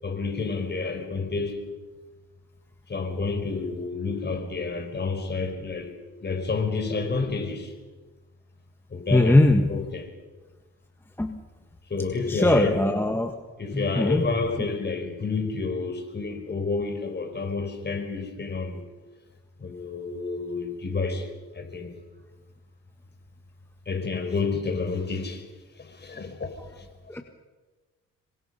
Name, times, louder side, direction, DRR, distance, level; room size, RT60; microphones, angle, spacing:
voice 1, 0.0-1.6 2.9-5.9 6.2-7.7 8.9-9.4 9.7-10.1 11.9-12.8 13.6-18.9 19.6-21.3 21.5-21.9 23.8-25.5 25.8-26.5 26.8-26.9, left 4 dB, 35° left, 5 dB, 4.9 m, -29 dB
voice 2, 9.1-9.6 11.2-11.4 12.3-13.3 13.7-14.3 27.1-27.2, left 1 dB, 5° left, 5 dB, 1.5 m, -20 dB
26.5 x 24.0 x 5.7 m, 1.3 s
cardioid pair, 90°, 30 cm